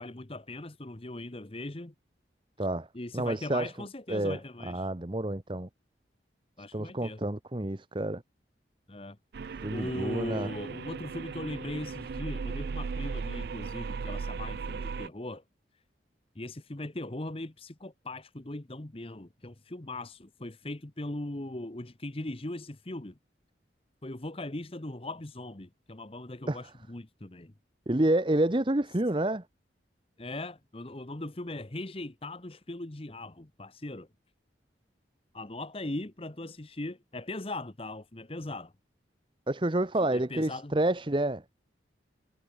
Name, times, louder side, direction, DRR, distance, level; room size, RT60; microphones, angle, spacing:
voice 1, 0.0-1.9 2.6-2.7 2.9-4.9 6.6-7.2 8.9-9.2 9.7-15.4 15.7-15.8 16.3-23.2 24.0-27.5 30.2-34.1 35.3-38.7 40.0-40.7, left 2 dB, 30° left, 1.1 m, -39 dB
voice 2, 3.1-3.7 4.1-5.7 6.7-8.2 9.6-10.5 26.5-26.6 27.9-29.4 39.5-41.4, right 1 dB, 25° right, 0.9 m, -29 dB
sound 1, 9.3-15.1, right 5 dB, 55° right, 0.4 m, -37 dB
head